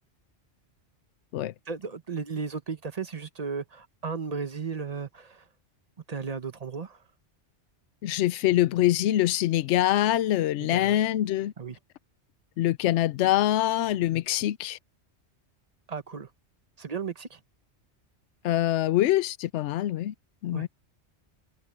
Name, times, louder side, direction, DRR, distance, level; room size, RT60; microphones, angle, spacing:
voice 1, 1.7-5.5 6.1-7.0 10.6-11.0 11.6-11.8 15.9-16.3 16.8-17.4 20.5-20.7, right 5 dB, 35° right, 1.0 m, -35 dB
voice 2, 8.0-11.5 12.6-14.8 18.4-20.1 20.4-20.7, left 13 dB, 80° left, 0.9 m, -24 dB
omnidirectional pair, 1.2 m